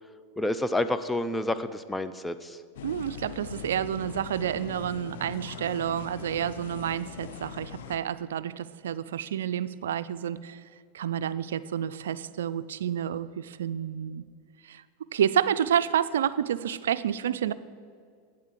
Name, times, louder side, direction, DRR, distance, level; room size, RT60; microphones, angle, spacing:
voice 1, 0.4-2.6, left 1 dB, 10° left, 11 dB, 0.5 m, -29 dB
sound 1, 2.8-8.0, left 8 dB, 80° left, 0.6 m, -41 dB
voice 2, 2.8-10.6 10.9-14.2 14.6-14.8 15.1-17.5, right 9 dB, 85° right, 15 dB, 0.4 m, -29 dB
8.8 x 7.5 x 7.4 m, 2.2 s
hypercardioid pair, 115°, 0 cm